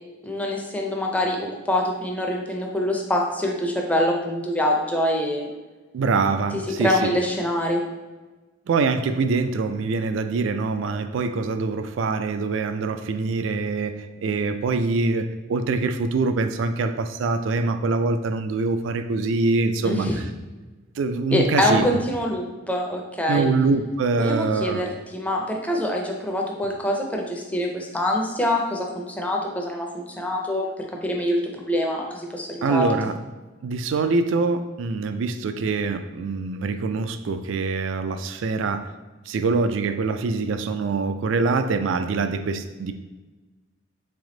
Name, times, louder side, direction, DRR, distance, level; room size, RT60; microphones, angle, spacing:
voice 1, 0.2-5.5 6.8-7.8 19.8-20.1 21.3-23.5 24.2-30.7 31.0-32.9, left 1 dB, 5° left, 0 dB, 0.5 m, -25 dB
voice 2, 5.9-7.1 8.7-20.1 21.0-21.9 23.3-24.9 32.6-33.1 33.6-38.9 39.3-42.9, right 4 dB, 70° right, 9 dB, 0.3 m, -24 dB
3.5 x 3.4 x 3.8 m, 1.2 s
head